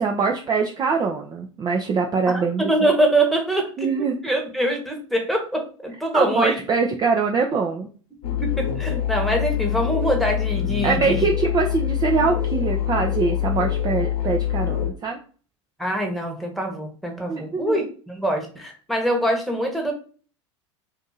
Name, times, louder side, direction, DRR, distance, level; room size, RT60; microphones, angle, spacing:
voice 1, 0.0-2.9 3.8-4.1 6.1-7.9 8.9-9.0 10.8-15.2 17.3-17.8, right 4 dB, 25° right, 2 dB, 0.5 m, -23 dB
voice 2, 2.3-6.6 8.4-11.2 15.8-19.9, right 1 dB, ahead, 2 dB, 1.0 m, -24 dB
sound 1, 8.2-14.9, left 10 dB, 60° left, 0.9 m, -25 dB
2.6 x 2.6 x 3.9 m, 0.40 s
hypercardioid pair, 85°, 16 cm